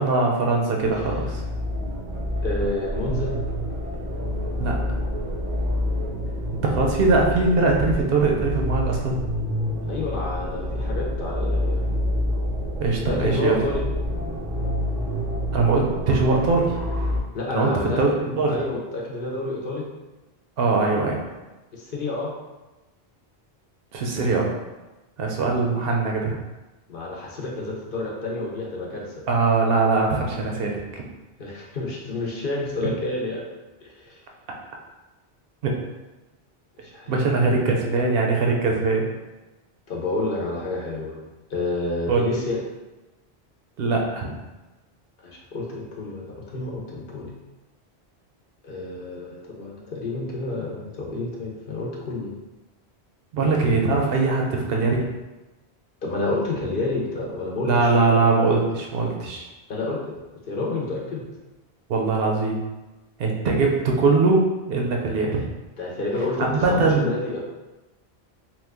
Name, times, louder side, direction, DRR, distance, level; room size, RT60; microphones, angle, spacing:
voice 1, 0.0-1.4 4.6-5.0 6.6-9.2 12.8-13.6 15.5-16.7 17.5-18.5 20.6-21.2 23.9-24.5 25.2-26.4 29.3-31.0 35.6-35.8 37.1-39.1 42.1-42.2 43.8-44.3 53.3-55.1 57.6-59.5 61.9-62.6 63.2-65.4 66.4-67.1, right 3 dB, 65° right, 0 dB, 0.7 m, -21 dB
sound 1, 0.8-17.2, equal, 30° right, 0.5 m, -28 dB
voice 2, 2.4-3.4 9.9-11.8 13.1-13.9 17.3-18.0 18.5-19.8 21.7-22.3 25.5-25.9 26.9-29.1 31.4-33.4 33.8-34.2 36.8-37.7 39.9-41.2 41.5-42.6 45.2-47.3 48.6-52.3 56.0-57.9 59.7-60.2 60.4-61.2 65.8-67.4, left 2 dB, 60° left, -2 dB, 0.8 m, -29 dB
2.9 x 2.2 x 3.4 m, 1.1 s
omnidirectional pair, 1.1 m